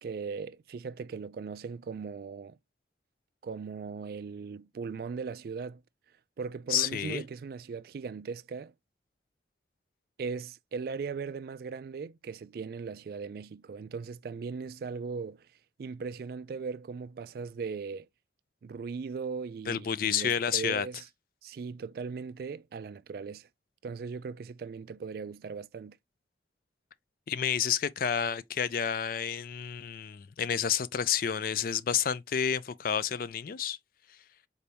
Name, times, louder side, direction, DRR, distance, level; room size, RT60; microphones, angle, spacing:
voice 1, 0.0-2.6 3.4-5.8 6.4-8.7 10.2-15.5 15.8-18.1 18.6-21.1 21.4-23.5 23.8-26.0, right 5 dB, 55° right, 0.3 m, -38 dB
voice 2, 6.7-7.2 19.7-20.9 27.3-33.8, left 8 dB, 50° left, 0.3 m, -30 dB
4.0 x 3.4 x 2.7 m
head